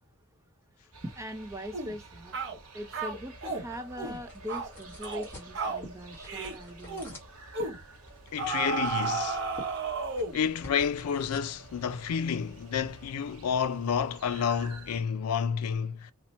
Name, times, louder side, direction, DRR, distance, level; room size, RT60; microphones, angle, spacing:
voice 1, 0.8-2.4 2.7-7.0, equal, 15° right, 0.4 m, -41 dB
sound 1, 0.9-15.0, right 2 dB, 80° right, 1.3 m, -50 dB
sound 2, 1.7-1.9 2.3-2.6 2.9-3.6 4.0-4.2 4.5-4.7 5.0-5.3 5.5-5.8 6.3-6.6 6.9-7.1 7.5-7.8 8.4-10.4, right 4 dB, 55° right, 0.8 m, -33 dB
sound 3, 2.9-13.1, left 1 dB, 10° left, 1.2 m, -52 dB
voice 2, 8.3-9.4 10.3-16.1, left 7 dB, 90° left, 0.4 m, -30 dB
2.9 x 2.1 x 4.1 m
head